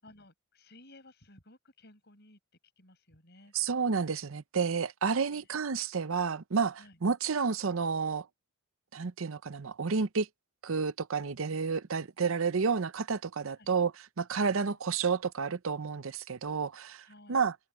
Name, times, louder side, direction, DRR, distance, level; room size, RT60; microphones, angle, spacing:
voice 1, 0.0-2.4 2.8-3.5 5.3-5.5 6.8-7.0 13.6-13.7 17.0-17.4, left 1 dB, 50° left, 6.8 m, -57 dB
voice 2, 3.5-8.3 8.9-10.3 10.6-13.9 14.2-17.5, right 5 dB, 65° right, 0.7 m, -30 dB
head